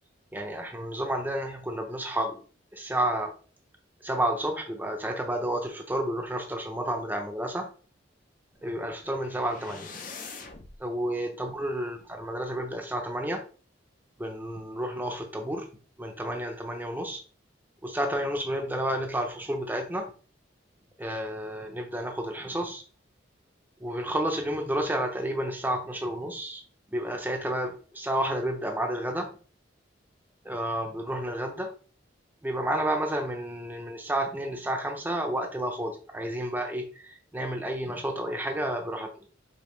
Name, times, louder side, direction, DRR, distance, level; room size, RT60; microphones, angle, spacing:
voice 1, 0.3-2.4 2.7-3.3 4.0-7.7 8.6-9.9 10.8-13.4 14.2-15.6 16.0-17.2 17.8-20.1 21.0-22.8 23.8-26.6 26.9-29.3 30.4-31.7 32.4-39.1, right 1 dB, 10° right, 3 dB, 0.6 m, -31 dB
sound 1, 8.6-10.8, left 4 dB, 45° left, 0.6 m, -44 dB
5.1 x 2.6 x 3.2 m, 0.39 s
head